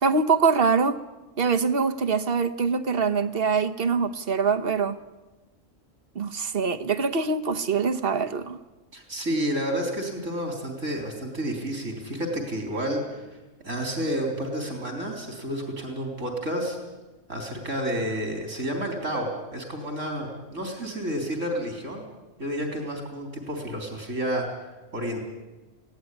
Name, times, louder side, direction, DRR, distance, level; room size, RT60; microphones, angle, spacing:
voice 1, 0.0-1.0 1.4-5.0 6.1-8.6, right 5 dB, 50° right, 1.2 m, -24 dB
voice 2, 8.9-13.4 13.6-16.8 17.3-22.0 22.4-24.5 24.9-25.2, equal, 75° right, 4.3 m, -30 dB
21.5 x 17.0 x 10.0 m
omnidirectional pair, 1.3 m